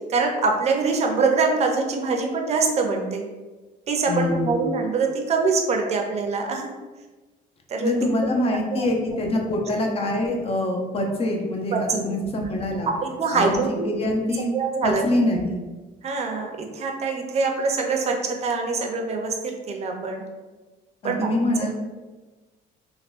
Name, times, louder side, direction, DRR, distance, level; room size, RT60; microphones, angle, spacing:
voice 1, 0.1-3.3 3.9-6.7 7.7-8.3 8.7-8.9 11.7-12.5 12.9-13.8 14.5-15.0 16.0-20.2 21.0-21.6, right 4 dB, 40° right, 3 dB, 0.5 m, -24 dB
voice 2, 4.1-4.5 7.8-12.9 13.3-13.6 13.8-14.5 14.8-15.6 21.0-21.7, left 1 dB, 35° left, 1 dB, 0.6 m, -24 dB
3.5 x 2.2 x 2.4 m, 1.2 s
cardioid pair, 110°, 17 cm